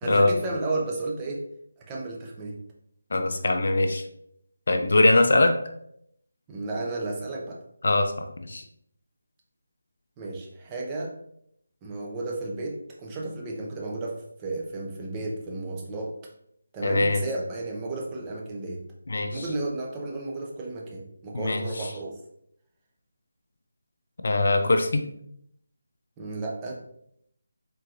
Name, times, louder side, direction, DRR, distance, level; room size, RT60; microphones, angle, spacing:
voice 1, 0.0-1.5 1.9-2.6 6.5-7.6 10.2-11.1 11.8-16.2 16.7-18.9 19.3-22.2 26.2-26.8, right 2 dB, 15° right, -1 dB, 0.5 m, -33 dB
voice 2, 3.1-4.0 4.7-5.5 7.8-8.6 16.8-17.2 19.1-19.4 21.4-21.6 24.2-25.0, left 2 dB, 65° left, 6 dB, 0.3 m, -22 dB
3.7 x 2.8 x 2.4 m, 0.72 s
figure-of-eight pair, 165°, 0 cm